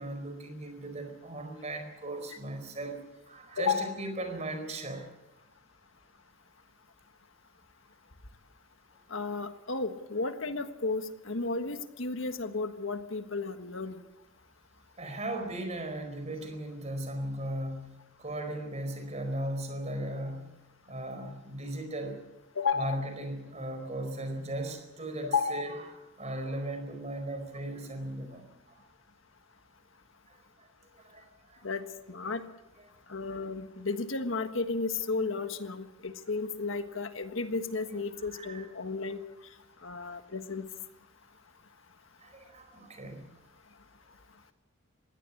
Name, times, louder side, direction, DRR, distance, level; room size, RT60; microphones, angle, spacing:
voice 1, 0.0-3.0 3.3-5.1 15.0-20.5 20.9-22.2 22.7-25.8 26.2-28.8 30.3-30.7 30.9-31.7 32.3-32.4 33.2-33.3 38.1-38.6 39.9-40.1 42.2-43.2, right 1 dB, 35° right, 6 dB, 4.5 m, -37 dB
voice 2, 9.1-14.0 22.5-23.0 25.2-25.6 31.6-32.4 33.1-39.2 39.8-40.7, left 4 dB, 70° left, 9 dB, 1.5 m, -33 dB
21.0 x 16.5 x 8.4 m, 0.98 s
head